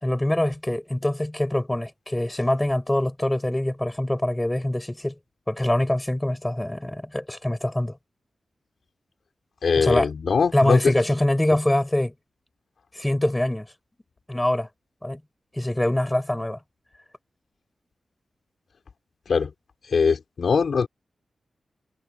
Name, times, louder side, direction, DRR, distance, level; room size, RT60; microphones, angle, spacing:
voice 1, 0.0-5.1 5.5-8.0 9.8-10.1 10.5-12.1 12.9-13.7 14.3-14.7 15.0-15.2 15.5-16.6, left 1 dB, 10° left, 5.8 m, -24 dB
voice 2, 9.6-10.9 19.3-19.5 19.9-20.9, left 5 dB, 60° left, 4.1 m, -21 dB
wide cardioid pair, 150°, 0 cm